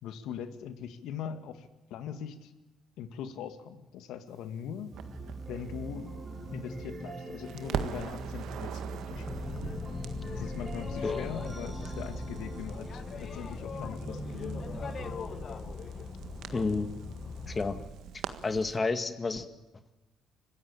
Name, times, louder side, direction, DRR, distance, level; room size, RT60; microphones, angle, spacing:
voice 1, 0.0-2.5 3.0-4.9 5.5-6.1 6.5-9.3 10.3-14.8, left 8 dB, 80° left, 10 dB, 2.0 m, -41 dB
sound 1, 4.9-15.1, right 2 dB, 35° right, 6.7 m, -41 dB
Crackle, 5.0-7.1 7.4-18.8, right 9 dB, 75° right, 1.6 m, -43 dB
Boat Water vehicle, 9.1-17.9, left 5 dB, 50° left, 1.7 m, -40 dB
voice 2, 16.5-16.9 17.5-17.8 18.4-19.5, left 4 dB, 30° left, 10 dB, 2.0 m, -30 dB
25.5 x 15.5 x 9.0 m, 1.1 s
supercardioid pair, 70°, 0 cm